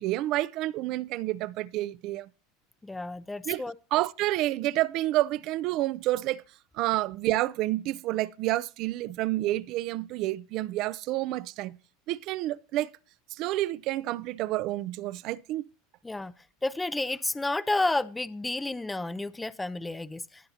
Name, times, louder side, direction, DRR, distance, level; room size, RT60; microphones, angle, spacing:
voice 1, 0.0-2.3 3.5-3.6 3.9-6.4 6.7-11.8 12.1-12.9 13.3-15.7, right 16 dB, 55° right, 0.4 m, -29 dB
voice 2, 2.8-3.7 16.0-16.3 16.6-20.5, left 2 dB, 10° left, 0.4 m, -31 dB
18.5 x 7.8 x 2.8 m
supercardioid pair, 125°, 0 cm